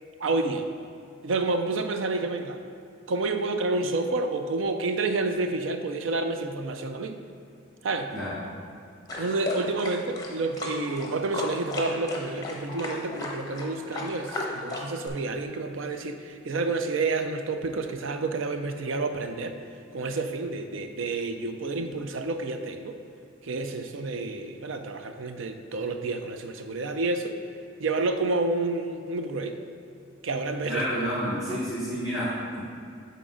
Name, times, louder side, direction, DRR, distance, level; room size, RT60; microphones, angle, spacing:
voice 1, 0.2-0.7 1.2-2.6 3.1-7.2 7.8-8.1 9.2-19.6 19.9-23.0 23.4-27.4 27.8-29.6 30.2-31.1 31.5-31.6, right 3 dB, 80° right, 7 dB, 0.5 m, -29 dB
voice 2, 8.1-8.4 30.6-32.6, equal, 15° right, -12 dB, 1.8 m, -30 dB
sound 1, 9.1-15.1, left 2 dB, 20° left, 0.9 m, -34 dB
10.0 x 4.1 x 3.8 m, 2.4 s
head